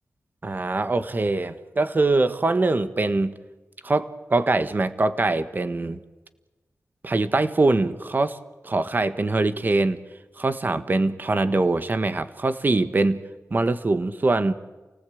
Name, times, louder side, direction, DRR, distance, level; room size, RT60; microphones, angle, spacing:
voice 1, 0.4-3.3 3.8-6.0 7.0-8.4 8.6-10.0 10.4-13.2 13.5-14.5, right 2 dB, 35° right, 11 dB, 1.5 m, -23 dB
29.0 x 19.0 x 8.7 m, 1.2 s
wide cardioid pair, 115°, 6 cm